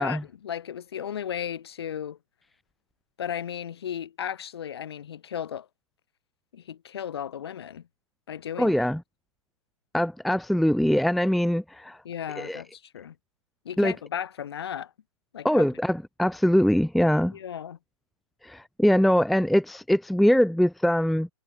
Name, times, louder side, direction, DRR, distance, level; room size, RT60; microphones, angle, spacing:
voice 1, 0.0-2.2 3.2-5.7 6.5-7.8 8.3-8.8 12.0-13.1 13.6-14.9 15.3-15.7 17.3-17.8, left 9 dB, 45° left, 4.5 m, -35 dB
voice 2, 8.6-9.0 9.9-12.0 12.4-12.6 13.8-13.9 15.4-17.4 18.4-21.3, equal, ahead, 0.8 m, -22 dB
hypercardioid pair, 175°, 18 cm